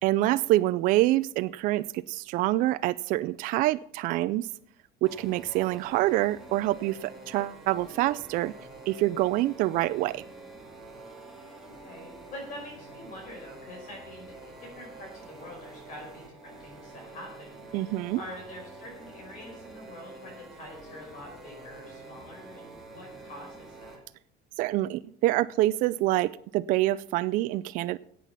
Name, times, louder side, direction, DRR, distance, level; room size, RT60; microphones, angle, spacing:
voice 1, 0.0-4.5 5.0-8.5 8.9-10.2 17.7-18.2 24.6-28.0, right 16 dB, 50° right, 13 dB, 0.4 m, -26 dB
sound 1, 5.0-24.0, right 2 dB, ahead, 2.1 m, -47 dB
voice 2, 11.6-24.0, left 1 dB, 50° left, 1 dB, 4.8 m, -45 dB
15.0 x 8.4 x 5.7 m, 0.65 s
cardioid pair, 170°, 17 cm